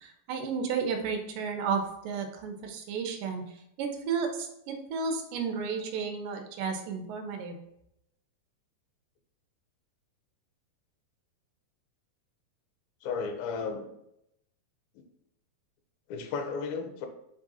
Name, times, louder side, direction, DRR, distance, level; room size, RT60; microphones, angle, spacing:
voice 1, 0.0-3.4 3.8-7.6, right 5 dB, 80° right, 4 dB, 2.0 m, -32 dB
voice 2, 13.0-13.9 15.0-15.1 16.1-17.1, left 5 dB, 85° left, 6 dB, 2.3 m, -34 dB
5.2 x 3.6 x 2.8 m, 0.79 s
omnidirectional pair, 4.3 m